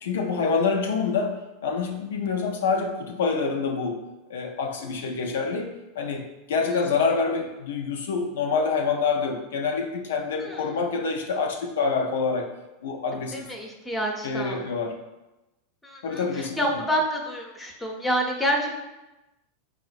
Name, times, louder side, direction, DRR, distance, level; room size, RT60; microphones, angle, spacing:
voice 1, 0.0-4.0 4.3-12.5 12.8-13.5 14.2-14.9 16.0-16.8, left 5 dB, 70° left, 3 dB, 0.4 m, -26 dB
voice 2, 13.5-14.6 15.8-18.7, equal, 10° left, 1 dB, 0.7 m, -28 dB
5.4 x 2.0 x 2.4 m, 1.0 s
figure-of-eight pair, 90°, 0 cm